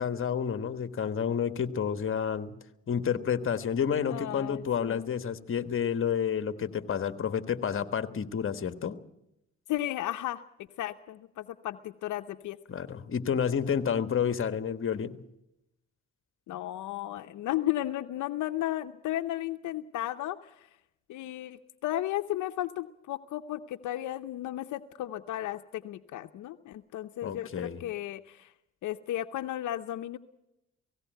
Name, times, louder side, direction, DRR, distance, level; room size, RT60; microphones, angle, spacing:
voice 1, 0.0-2.6 2.9-8.9 12.7-15.2 27.2-27.8, left 7 dB, 45° left, 11 dB, 1.3 m, -30 dB
voice 2, 4.1-5.1 9.7-10.4 10.8-12.6 16.5-20.7 21.1-28.5 28.8-30.2, left 14 dB, 80° left, 8 dB, 0.7 m, -34 dB
18.0 x 16.5 x 9.0 m, 0.87 s
cardioid pair, 90°, 30 cm